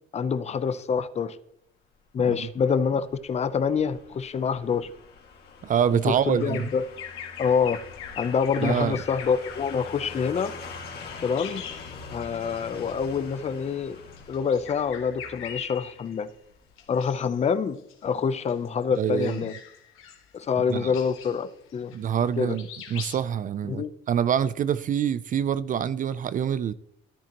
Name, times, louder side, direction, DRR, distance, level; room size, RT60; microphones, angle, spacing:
voice 1, 0.1-1.4 2.1-4.9 6.1-6.8 7.4-7.8 8.2-10.5 11.2-11.6 12.1-14.0 14.3-16.3 16.9-19.5 20.3-21.9 22.4-22.6 23.7-23.9, left 6 dB, 30° left, 0.6 m, -26 dB
sound 1, 2.1-17.0 17.3-17.4, left 4 dB, 50° left, 2.1 m, -44 dB
voice 2, 5.6-6.7 8.6-9.0 19.0-19.4 20.7-20.9 21.9-26.7, right 8 dB, 40° right, 0.4 m, -26 dB
Bird vocalization bird call bird song, 6.4-12.5 12.8-13.0 14.0-16.3 16.8-17.4 17.8-22.3 22.6-23.2, left 8 dB, 80° left, 1.6 m, -42 dB
13.5 x 10.0 x 3.0 m
cardioid pair, 120°, 21 cm